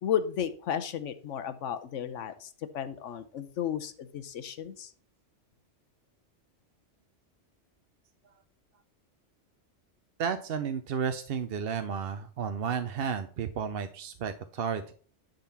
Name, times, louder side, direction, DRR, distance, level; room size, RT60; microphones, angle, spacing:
voice 1, 0.0-4.9, left 9 dB, 90° left, 11 dB, 1.1 m, -33 dB
voice 2, 10.2-14.9, right 7 dB, 60° right, 9 dB, 0.8 m, -32 dB
10.5 x 3.9 x 5.8 m, 0.43 s
omnidirectional pair, 1.2 m